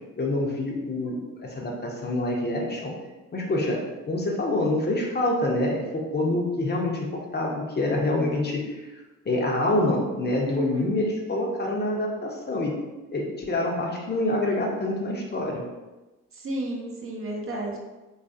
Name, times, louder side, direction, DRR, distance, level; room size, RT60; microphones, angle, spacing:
voice 1, 0.2-2.9 3.3-3.8 4.1-8.9 9.3-12.8 13.1-15.6, left 1 dB, 35° left, -1 dB, 0.6 m, -26 dB
voice 2, 10.4-11.0 16.4-17.8, right 1 dB, 45° right, -1 dB, 0.7 m, -32 dB
2.7 x 2.4 x 2.6 m, 1.1 s
supercardioid pair, 60°, 31 cm